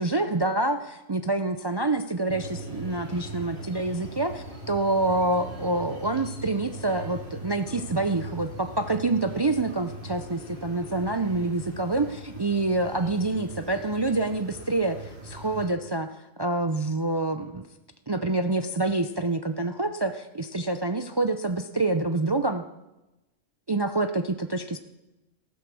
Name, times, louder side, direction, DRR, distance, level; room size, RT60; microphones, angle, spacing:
voice 1, 0.0-16.1 16.4-17.7 18.1-22.6 23.7-24.8, right 2 dB, 35° right, 9 dB, 0.4 m, -27 dB
sound 1, 2.3-15.7, right 1 dB, 55° right, 3.4 m, -40 dB
14.5 x 11.5 x 6.3 m, 0.98 s
omnidirectional pair, 1.2 m